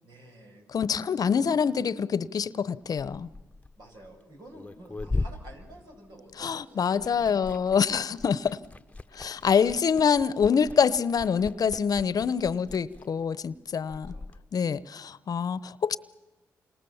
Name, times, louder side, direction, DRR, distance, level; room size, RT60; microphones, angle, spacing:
voice 1, 0.0-0.6 1.4-1.6 3.8-8.0 13.9-14.3, right 1 dB, 70° right, 1 dB, 7.9 m, -50 dB
voice 2, 0.7-3.3 6.4-8.6 9.1-14.1 14.5-16.0, left 6 dB, 60° left, 18 dB, 0.9 m, -25 dB
Liquid, 2.8-6.5 6.8-14.4, left 3 dB, 20° left, 1.0 m, -39 dB
28.5 x 26.5 x 7.3 m, 1.1 s
supercardioid pair, 50°, 7 cm